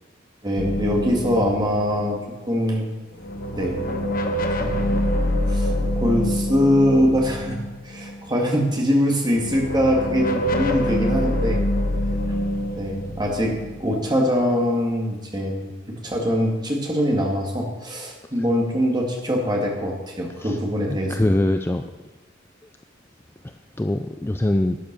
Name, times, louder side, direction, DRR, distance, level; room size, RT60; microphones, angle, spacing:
voice 1, 0.4-2.9 3.5-4.0 4.6-5.0 5.5-11.6 12.8-15.7 16.0-21.3, equal, 20° right, 0 dB, 2.2 m, -23 dB
sound 1, 0.6-2.8 3.2-8.3 9.2-14.7, left 1 dB, 45° left, 1.1 m, -25 dB
voice 2, 20.9-21.8 23.8-24.8, left 1 dB, 10° left, 6 dB, 0.4 m, -22 dB
12.0 x 9.1 x 6.1 m, 1.2 s
head